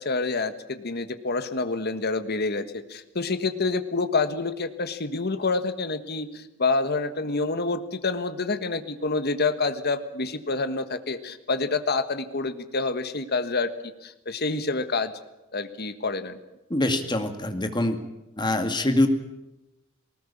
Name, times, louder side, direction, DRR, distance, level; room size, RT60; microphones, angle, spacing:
voice 1, 0.0-13.7 14.0-15.1 15.5-16.4, left 3 dB, 50° left, 10 dB, 1.5 m, -27 dB
voice 2, 16.7-18.0 18.4-19.1, left 1 dB, 20° left, 6 dB, 2.2 m, -24 dB
19.5 x 19.5 x 8.6 m, 0.97 s
head